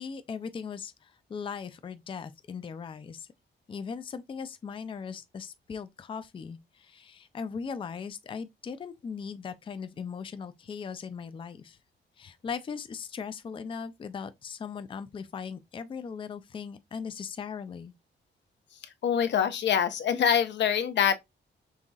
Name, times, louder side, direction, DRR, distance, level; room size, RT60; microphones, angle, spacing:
voice 1, 0.0-3.3 3.7-11.8 12.2-17.9, left 6 dB, 25° left, 0.4 m, -39 dB
voice 2, 19.0-21.1, left 8 dB, 70° left, 0.8 m, -25 dB
5.5 x 3.7 x 2.3 m
wide cardioid pair, 170°, 19 cm